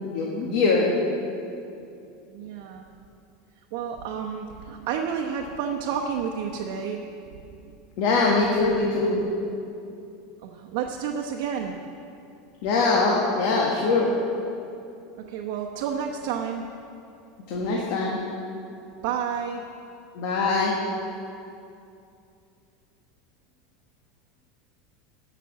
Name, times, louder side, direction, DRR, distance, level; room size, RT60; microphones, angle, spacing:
voice 1, 0.0-0.9 8.0-9.2 12.6-14.1 17.5-18.2 20.1-20.7, left 3 dB, 55° left, -2 dB, 1.5 m, -22 dB
voice 2, 2.3-2.8 3.7-7.0 10.4-11.8 15.2-16.6 19.0-19.6, right 7 dB, 60° right, 1 dB, 0.9 m, -30 dB
13.0 x 6.0 x 7.5 m, 2.6 s
supercardioid pair, 155°, 0 cm